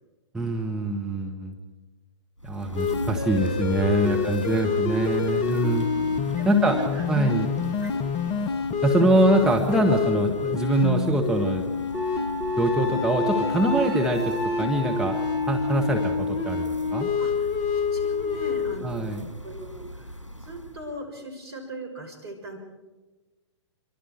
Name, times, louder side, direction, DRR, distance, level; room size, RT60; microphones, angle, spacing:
voice 1, 0.3-1.5 2.4-5.9 6.5-6.8 7.1-7.5 8.8-11.6 12.6-15.2 15.5-17.1 18.8-19.2, right 1 dB, 5° right, 0 dB, 1.8 m, -24 dB
sound 1, 2.4-20.9, equal, 85° left, 1.9 m, -38 dB
sound 2, 2.8-18.8, left 5 dB, 30° left, 1.2 m, -27 dB
voice 2, 4.6-5.0 5.3-6.0 6.4-7.5 7.8-8.0 8.9-9.3 17.2-22.6, equal, 60° right, 4 dB, 6.6 m, -40 dB
Wind instrument woodwind instrument, 11.9-16.3, left 3 dB, 30° right, 5.8 m, -34 dB
26.5 x 24.0 x 4.8 m, 1.1 s
figure-of-eight pair, 110°, 15 cm